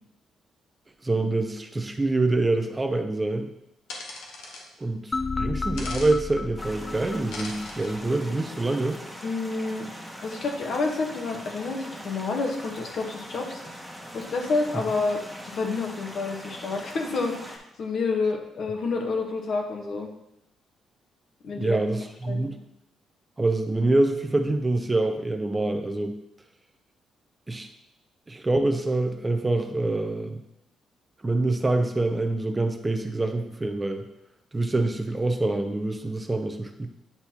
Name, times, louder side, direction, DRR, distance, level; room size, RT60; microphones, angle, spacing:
voice 1, 1.0-3.5 4.8-9.0 21.6-22.6 23.4-26.1 27.5-27.7 28.3-30.4 31.2-34.0 34.5-36.9, right 2 dB, 20° right, 6 dB, 0.6 m, -25 dB
sound 1, 3.9-4.6 5.8-6.1 7.3-7.9, left 3 dB, 85° left, 1.2 m, -39 dB
sound 2, 5.1-8.2, left 3 dB, 30° left, 0.3 m, -32 dB
sound 3, 6.6-17.6, equal, 5° left, 1.2 m, -42 dB
voice 2, 9.2-9.9 10.2-13.6 14.1-20.1 21.4-21.8 22.3-22.5, left 3 dB, 60° left, 2 dB, 1.3 m, -29 dB
9.6 x 4.3 x 2.9 m, 0.82 s
cardioid pair, 90°, 0 cm